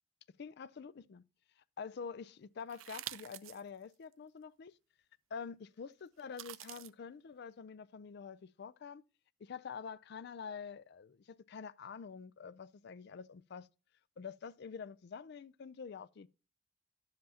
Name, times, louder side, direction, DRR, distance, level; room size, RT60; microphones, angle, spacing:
voice 1, 0.4-1.2 1.6-4.7 5.3-9.0 9.4-13.7 14.2-16.3, left 6 dB, 55° left, 0.4 m, -47 dB
sound 1, 2.7-3.6 4.1-4.2 6.2-6.9, right 14 dB, 80° right, 0.4 m, -46 dB
11.0 x 7.5 x 2.8 m
head